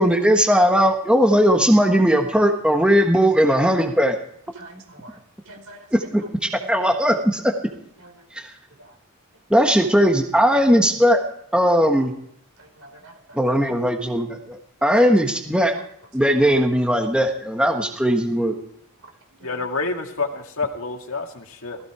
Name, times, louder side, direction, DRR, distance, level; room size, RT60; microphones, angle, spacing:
voice 1, 0.0-4.2 5.9-6.2 6.7-7.5 8.4-8.5 9.5-11.2 11.5-12.1 13.3-15.7 16.1-18.5, equal, 5° right, 3 dB, 1.4 m, -18 dB
voice 2, 4.6-5.2 5.5-5.8 6.6-6.7 8.0-8.1 8.8-8.9 12.6-13.4 19.4-19.6, right 2 dB, 70° right, 3 dB, 4.6 m, -45 dB
voice 3, 19.4-21.8, left 3 dB, 70° left, 3 dB, 2.0 m, -28 dB
17.0 x 15.5 x 4.9 m, 0.71 s
head